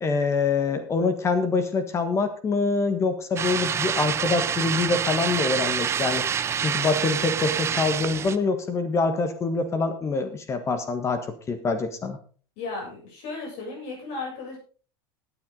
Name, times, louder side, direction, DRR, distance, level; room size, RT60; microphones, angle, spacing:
voice 1, 0.0-6.2 6.6-12.2, left 4 dB, 25° left, 9 dB, 1.4 m, -25 dB
sound 1, 3.4-8.4, right 8 dB, 25° right, 0.7 m, -27 dB
voice 2, 12.6-14.6, left 3 dB, 55° left, -1 dB, 7.8 m, -35 dB
17.0 x 9.3 x 3.9 m, 0.40 s
supercardioid pair, 130°, 11 cm